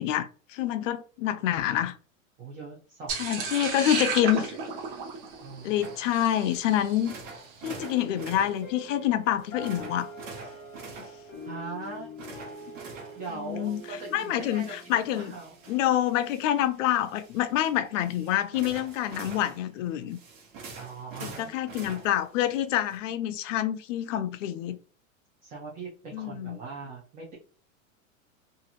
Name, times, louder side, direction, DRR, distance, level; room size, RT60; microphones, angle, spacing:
voice 1, 0.0-2.0 3.2-4.6 5.6-7.1 7.6-10.1 13.3-15.3 15.7-20.2 21.2-24.8 26.1-26.6, left 12 dB, 65° left, 0.5 m, -27 dB
voice 2, 2.4-4.5 5.4-5.8 11.4-12.1 13.2-15.5 20.8-21.5 25.4-27.4, right 4 dB, 20° right, 0.5 m, -41 dB
sound 1, 3.1-7.4, right 5 dB, 40° right, 0.9 m, -34 dB
sound 2, 5.8-23.0, right 4 dB, 65° right, 1.2 m, -47 dB
sound 3, 7.6-16.2, equal, 20° left, 0.8 m, -45 dB
2.8 x 2.6 x 2.5 m
supercardioid pair, 145°, 41 cm